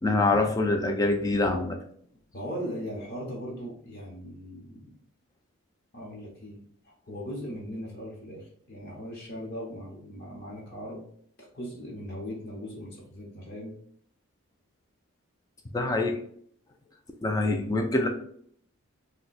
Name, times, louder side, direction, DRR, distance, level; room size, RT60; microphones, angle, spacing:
voice 1, 0.0-1.8 15.7-16.1 17.2-18.1, left 2 dB, 15° left, 4 dB, 0.4 m, -25 dB
voice 2, 2.3-4.9 5.9-11.1 11.4-13.8 15.8-15.9, equal, 45° left, -3 dB, 0.8 m, -39 dB
2.7 x 2.1 x 4.0 m, 0.62 s
head